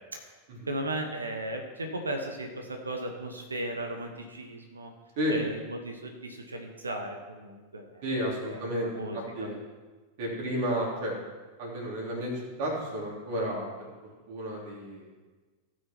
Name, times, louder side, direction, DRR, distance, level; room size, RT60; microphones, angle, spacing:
voice 1, 0.7-4.9 5.3-8.0 8.5-8.6 8.8-9.5, right 1 dB, 75° right, 4 dB, 1.2 m, -36 dB
voice 2, 8.0-8.9 9.1-9.6 10.2-11.2 11.6-13.9 14.3-15.1, equal, 50° right, -3 dB, 3.5 m, -32 dB
17.0 x 6.3 x 4.5 m, 1.3 s
figure-of-eight pair, 90°, 0 cm